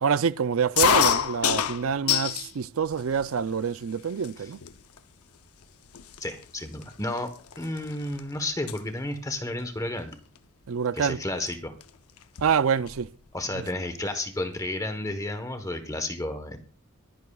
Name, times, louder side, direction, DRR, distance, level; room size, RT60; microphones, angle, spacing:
voice 1, 0.0-4.6 10.7-11.2 12.4-13.1, right 6 dB, 65° right, 0.5 m, -26 dB
sound 1, 0.8-2.5 2.9-3.6 4.2-4.3 4.6-5.0 5.6-5.7 5.9-8.2 8.5-8.8 10.1-10.4 11.5-11.6 11.8-11.9 12.2-13.1, left 8 dB, 80° left, 0.7 m, -26 dB
sound 2, 2.1-5.5, right 2 dB, 35° right, 4.9 m, -54 dB
voice 2, 6.2-10.2 10.9-11.7 13.3-16.6, left 1 dB, 15° left, 1.1 m, -32 dB
23.0 x 10.5 x 2.3 m
head